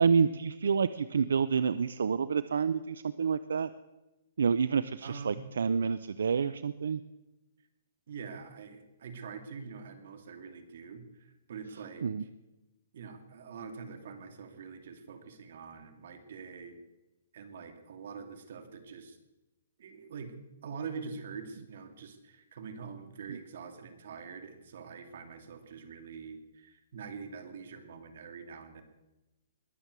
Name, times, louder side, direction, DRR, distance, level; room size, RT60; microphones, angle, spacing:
voice 1, 0.0-3.7 4.4-7.0 12.0-12.2 23.3-23.4, right 6 dB, 85° right, 14 dB, 0.6 m, -28 dB
voice 2, 5.0-5.4 8.1-12.1 12.9-16.8 17.3-19.2 19.8-20.3 20.6-28.8, right 5 dB, 60° right, 7 dB, 2.5 m, -44 dB
21.0 x 7.4 x 8.2 m, 1.0 s
hypercardioid pair, 160°, 0 cm